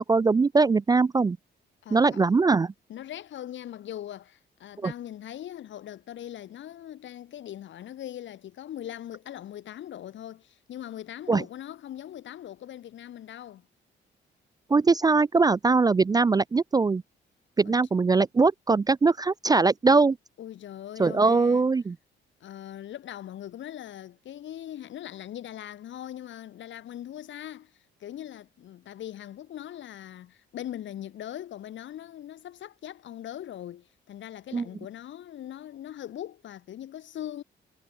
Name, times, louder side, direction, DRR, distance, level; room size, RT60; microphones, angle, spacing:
voice 1, 0.0-1.4 1.9-2.7 4.8-4.9 11.3-11.4 14.7-17.0 17.6-20.2 21.0-22.0 34.5-34.6, right 4 dB, 20° right, 0.4 m, -21 dB
voice 2, 1.8-2.3 2.9-13.7 17.7-17.8 20.4-21.7 22.4-37.4, left 11 dB, 70° left, 2.2 m, -41 dB
cardioid pair, 90°, 20 cm